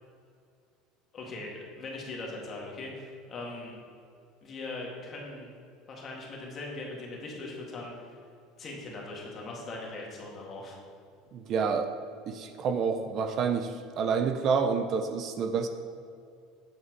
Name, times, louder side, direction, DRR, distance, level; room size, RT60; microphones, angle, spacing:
voice 1, 1.1-3.7 4.4-5.5 5.9-8.2 8.6-10.8, left 2 dB, 30° left, -2 dB, 1.8 m, -40 dB
voice 2, 11.3-11.9 12.3-15.7, right 5 dB, 40° right, 7 dB, 0.5 m, -28 dB
8.5 x 5.7 x 4.6 m, 2.4 s
cardioid pair, 145°, 0 cm